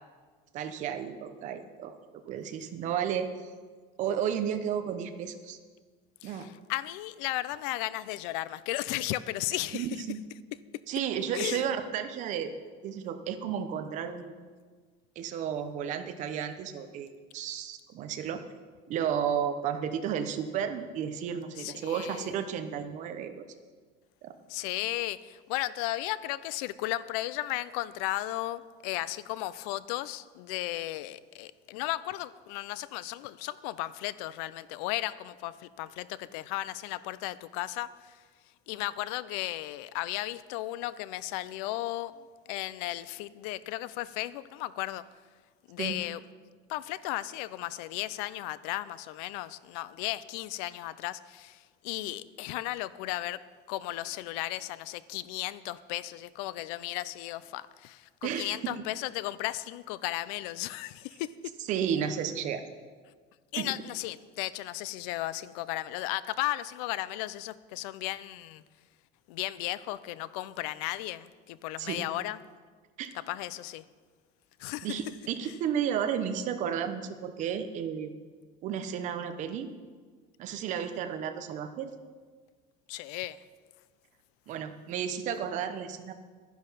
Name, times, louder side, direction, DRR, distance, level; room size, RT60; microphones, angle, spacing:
voice 1, 0.5-2.0 2.3-3.5 4.0-5.6 6.2-6.5 9.7-10.2 10.9-12.5 12.8-14.3 15.2-18.4 18.9-23.5 24.2-24.3 45.8-46.0 58.2-58.8 61.7-62.7 63.6-63.7 71.8-72.0 73.0-73.1 74.8-78.1 78.6-79.7 80.4-81.9 84.5-86.1, right 8 dB, 40° right, 8 dB, 0.9 m, -33 dB
voice 2, 6.2-9.9 11.3-11.7 21.6-22.3 24.5-38.2 38.7-45.1 45.7-46.2 46.7-53.4 53.7-61.5 63.5-68.6 69.3-72.4 73.1-73.8 74.6-74.9 82.9-83.4, left 16 dB, 85° left, 17 dB, 0.6 m, -35 dB
11.5 x 10.5 x 5.7 m, 1.5 s
cardioid pair, 175°, 19 cm